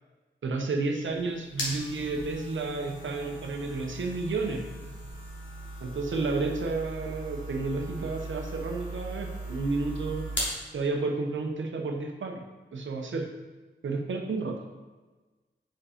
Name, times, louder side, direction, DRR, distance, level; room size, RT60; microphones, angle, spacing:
voice 1, 0.4-4.6 5.8-10.2 10.7-12.4 12.7-13.3 13.8-14.6, right 3 dB, 90° right, 3 dB, 0.9 m, -31 dB
sound 1, 1.0-10.6, right 1 dB, 75° left, 2.0 m, -38 dB
6.2 x 5.0 x 5.0 m, 1.2 s
cardioid pair, 45°, 19 cm